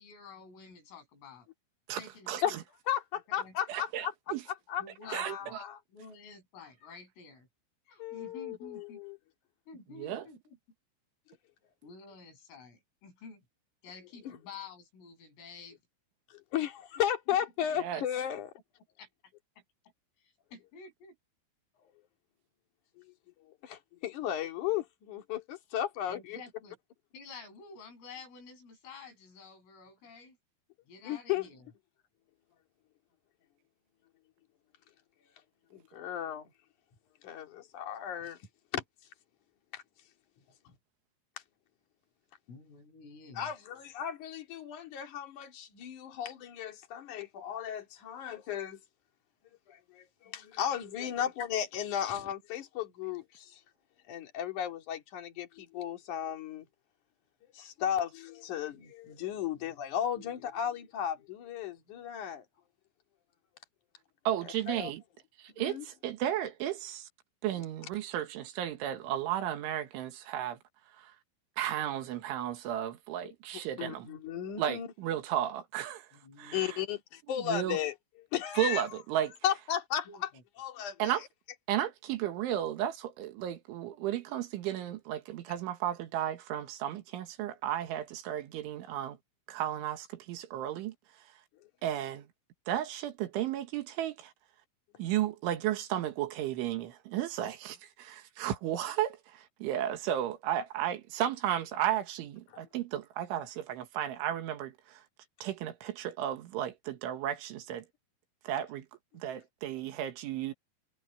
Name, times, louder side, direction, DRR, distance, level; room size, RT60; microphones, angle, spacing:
voice 1, 0.0-1.5 1.9-2.6 3.4-3.6 4.8-5.5 5.9-7.5 7.9-9.0 9.7-10.6 11.8-13.4 13.8-15.8 17.3-17.4 17.9-18.0 19.0-19.1 20.5-21.2 24.4-24.5 26.1-26.8 27.1-30.4 30.9-31.7 40.4-40.8 42.5-43.5 51.0-51.1 76.1-76.9 80.1-80.4, left 4 dB, 85° left, 9.9 m, -50 dB
voice 2, 1.9-2.6 3.7-4.4 5.1-5.6 10.0-10.3 17.8-18.0 64.3-65.0 65.4-67.1 67.4-70.6 71.0-71.1 71.6-74.1 74.6-76.1 76.4-76.8 77.5-77.8 78.6-79.3 81.0-81.2 81.7-89.2 89.5-90.9 91.8-92.3 92.7-94.3 95.0-105.0 105.4-107.9 108.4-108.9 109.1-110.5, right 11 dB, 75° right, 4.0 m, -34 dB
voice 3, 2.9-4.1 4.7-5.8 8.0-9.2 14.2-14.4 16.3-18.5 23.0-23.1 23.5-26.4 31.0-31.5 35.7-36.5 37.2-38.4 38.7-38.8 39.7-39.8 43.3-48.8 49.7-53.6 54.1-56.6 57.5-62.4 64.4-64.9 65.6-65.8 73.5-74.9 76.5-77.9 78.3-78.8 79.4-80.3 80.6-81.1, left 10 dB, 45° left, 3.4 m, -35 dB
omnidirectional pair, 5.7 m